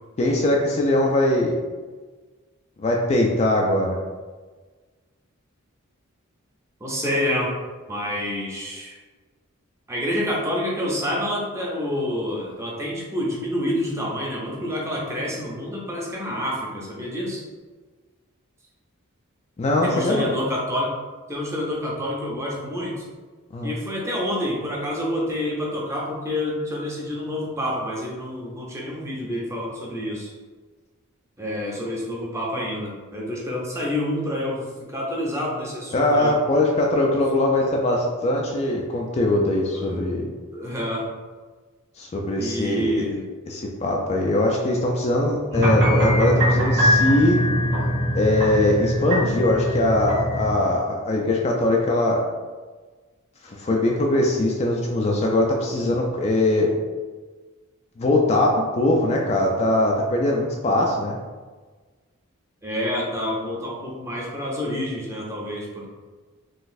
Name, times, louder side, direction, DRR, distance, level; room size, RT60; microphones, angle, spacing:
voice 1, 0.2-1.5 2.8-4.0 19.6-20.2 23.5-23.7 35.9-40.3 42.0-43.0 43.5-47.4 48.1-52.2 53.4-56.7 58.0-61.2, left 1 dB, 30° left, 0 dB, 0.3 m, -21 dB
voice 2, 6.8-7.6 7.9-9.0 9.9-17.4 19.8-20.9 21.3-23.1 23.6-30.3 31.4-36.3 39.7-39.9 40.5-41.1 42.4-43.2 62.6-65.9, left 1 dB, 15° right, -3 dB, 0.6 m, -28 dB
sound 1, 45.5-50.5, equal, 50° right, 1.4 m, -21 dB
3.8 x 2.4 x 2.6 m, 1.4 s
head